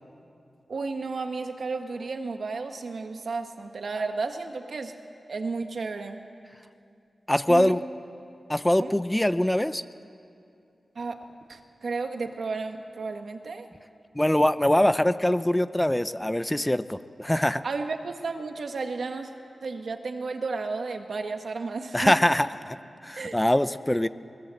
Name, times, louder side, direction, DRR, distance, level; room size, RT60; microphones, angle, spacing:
voice 1, 0.7-4.9 5.3-6.2 7.5-7.7 8.8-8.9 10.9-11.2 11.5-13.7 17.6-19.3 19.6-22.1 23.2-23.3, right 4 dB, 70° right, 6 dB, 1.5 m, -32 dB
voice 2, 7.3-7.8 8.5-9.8 14.1-17.6 21.9-22.8 23.0-24.1, left 1 dB, 10° left, 13 dB, 0.5 m, -23 dB
20.0 x 20.0 x 7.8 m, 2.6 s
wide cardioid pair, 80°, 0 cm